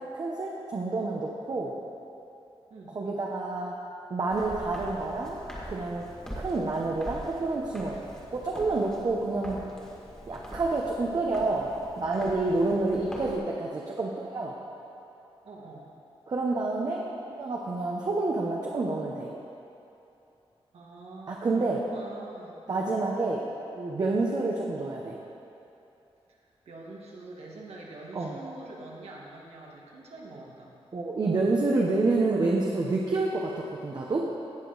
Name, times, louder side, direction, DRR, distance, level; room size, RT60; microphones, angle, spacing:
voice 1, 0.1-1.7 2.9-3.8 4.1-5.4 5.6-6.1 6.4-8.0 8.3-9.6 10.3-11.7 12.0-14.5 16.3-19.3 21.3-21.8 22.7-23.5 23.7-25.2 28.1-28.4 30.9-34.3, right 3 dB, 40° right, -2 dB, 0.9 m, -28 dB
Walk footsteps, 4.3-13.4, equal, 5° left, 1.9 m, -43 dB
voice 2, 15.4-15.9 20.7-23.0 26.7-30.7, right 2 dB, 85° right, -3 dB, 1.9 m, -45 dB
17.0 x 6.7 x 4.0 m, 2.9 s
wide cardioid pair, 155°, 10 cm